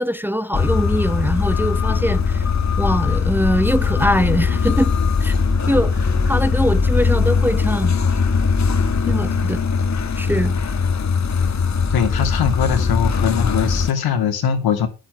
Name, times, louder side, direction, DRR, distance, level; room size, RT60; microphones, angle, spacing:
voice 1, 0.0-2.5 2.8-4.9 5.2-5.3 5.7-8.0 9.1-9.6 10.2-10.5, equal, 5° right, 0.7 m, -22 dB
sound 1, 0.5-13.9, left 5 dB, 45° left, 1.6 m, -20 dB
voice 2, 11.9-14.9, left 7 dB, 80° left, 2.5 m, -21 dB
10.0 x 7.5 x 6.1 m
cardioid pair, 90°, 37 cm